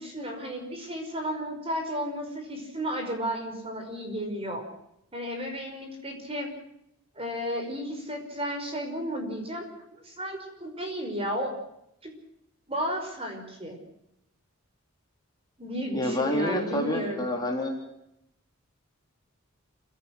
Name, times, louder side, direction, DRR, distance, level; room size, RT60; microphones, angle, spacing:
voice 1, 0.0-4.7 5.1-6.5 7.2-9.7 10.0-11.5 12.0-12.1 12.7-13.8 15.6-17.3, equal, 25° right, 4 dB, 5.5 m, -33 dB
voice 2, 15.9-17.8, left 1 dB, 20° left, 1 dB, 4.0 m, -28 dB
28.5 x 17.5 x 6.1 m, 0.78 s
head